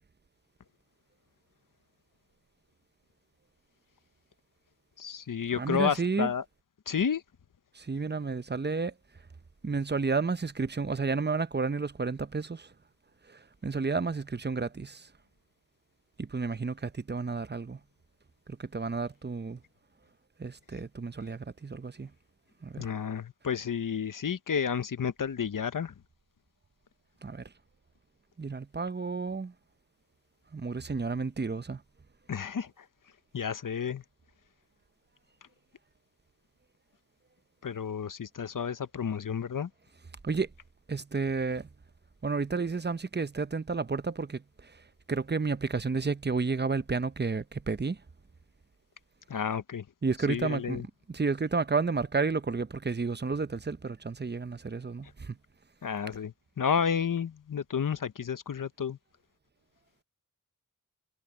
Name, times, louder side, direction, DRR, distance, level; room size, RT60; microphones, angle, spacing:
voice 1, 5.0-6.4 6.9-7.2 22.8-25.9 32.3-32.9 33.3-34.0 37.6-39.7 49.3-49.9 50.3-50.9 55.8-59.0, left 7 dB, 75° left, 0.9 m, -31 dB
voice 2, 5.6-6.3 7.8-8.9 9.6-12.7 13.3-15.1 16.2-17.8 18.6-19.6 20.4-22.1 22.6-22.9 27.2-27.5 28.4-29.5 30.5-31.8 40.2-40.5 40.9-41.7 42.2-44.7 45.1-48.0 50.0-50.8 51.1-55.4, right 4 dB, 30° right, 0.8 m, -31 dB
cardioid pair, 45°, 32 cm